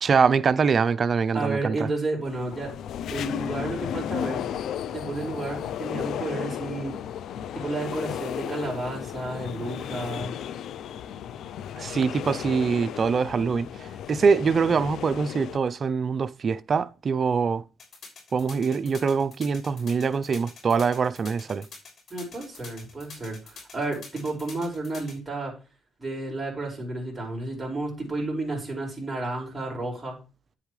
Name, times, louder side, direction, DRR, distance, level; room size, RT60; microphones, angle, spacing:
voice 1, 0.0-1.8 11.8-17.6 18.3-21.7, right 5 dB, 45° right, 0.5 m, -24 dB
voice 2, 1.3-2.7 3.1-4.4 4.9-6.9 7.5-10.3 22.1-25.5 26.0-30.2, right 2 dB, 20° right, 5.5 m, -32 dB
sound 1, 2.2-15.6, left 9 dB, 75° left, 0.5 m, -34 dB
sound 2, 17.8-25.1, left 4 dB, 55° left, 6.3 m, -45 dB
10.5 x 8.6 x 3.3 m
cardioid pair, 90°, 0 cm